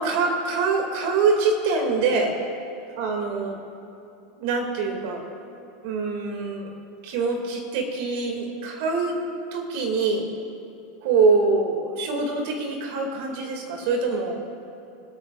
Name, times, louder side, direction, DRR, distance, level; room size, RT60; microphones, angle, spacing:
voice 1, 0.0-2.3 3.0-3.6 4.4-5.2 5.8-6.7 7.0-9.2 9.5-10.3 11.0-14.4, right 4 dB, 65° right, 2 dB, 2.3 m, -24 dB
25.5 x 8.8 x 2.5 m, 2.7 s
hypercardioid pair, 95°, 0 cm